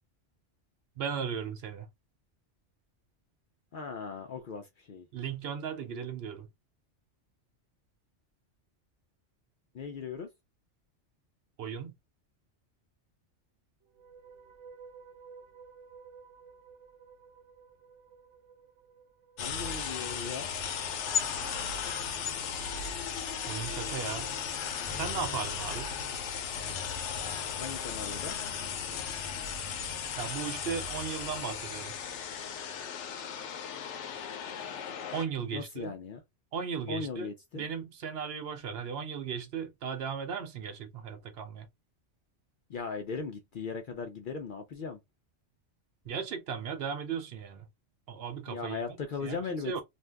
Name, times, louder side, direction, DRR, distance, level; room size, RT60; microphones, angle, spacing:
voice 1, 1.0-1.9 5.1-6.5 11.6-11.9 23.5-24.3 25.0-25.9 30.2-31.9 35.1-35.9 36.5-37.3 37.5-41.7 46.1-47.7 48.1-49.4 49.6-49.8, right 7 dB, 65° right, 0.8 m, -36 dB
voice 2, 3.7-5.0 9.7-10.3 19.4-20.5 27.6-28.4 35.5-36.2 36.9-37.7 42.7-45.0 48.5-49.7, left 5 dB, 60° left, 0.6 m, -38 dB
sound 1, 13.8-21.1, right 5 dB, 85° right, 1.0 m, -54 dB
sound 2, 19.4-35.2, left 7 dB, 75° left, 0.9 m, -36 dB
2.6 x 2.1 x 3.3 m
omnidirectional pair, 1.2 m